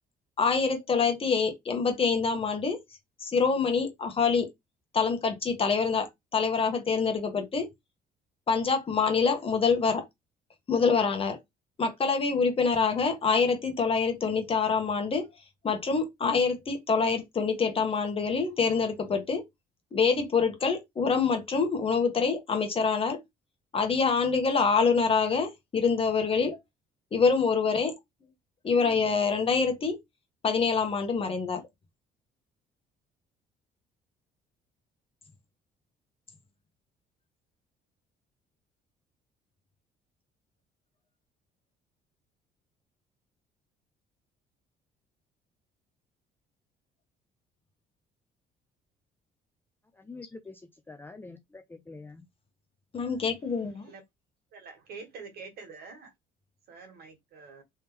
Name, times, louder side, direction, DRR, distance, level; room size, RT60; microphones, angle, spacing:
voice 1, 0.4-2.8 3.2-4.5 4.9-7.7 8.5-10.0 10.7-11.4 11.8-15.3 15.6-19.4 19.9-23.2 23.7-26.6 27.1-27.9 28.6-30.0 30.4-31.6 52.9-53.9, left 5 dB, 35° left, 1.3 m, -26 dB
voice 2, 50.0-50.6 50.9-52.2, left 3 dB, 10° left, 0.5 m, -45 dB
voice 3, 54.5-56.1 56.7-57.6, right 4 dB, 65° right, 1.6 m, -46 dB
3.4 x 3.1 x 3.1 m
cardioid pair, 110°, 17 cm